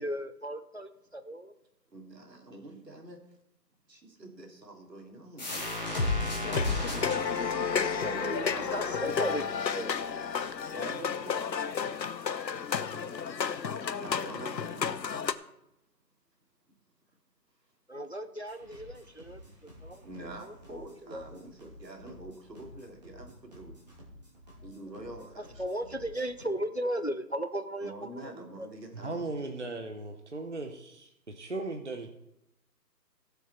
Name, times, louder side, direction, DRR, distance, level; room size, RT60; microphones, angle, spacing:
voice 1, 0.0-1.5 8.0-9.4 9.7-10.0 17.9-20.1 20.4-21.2 25.4-28.7, right 1 dB, 45° left, 0.5 m, -36 dB
voice 2, 1.9-3.2 3.9-5.9 8.5-9.2 10.7-11.5 14.0-15.3 20.0-23.7 24.6-25.6 27.8-29.2, right 1 dB, 75° right, 3.2 m, -46 dB
sound 1, 5.4-10.8, left 2 dB, 25° left, 2.2 m, -34 dB
sound 2, 6.4-15.3, left 6 dB, 80° left, 0.9 m, -32 dB
sound 3, 18.4-26.5, left 1 dB, 25° right, 2.8 m, -52 dB
voice 3, 28.9-32.1, right 2 dB, 45° right, 0.9 m, -37 dB
16.5 x 7.2 x 4.4 m
figure-of-eight pair, 180°, 50 cm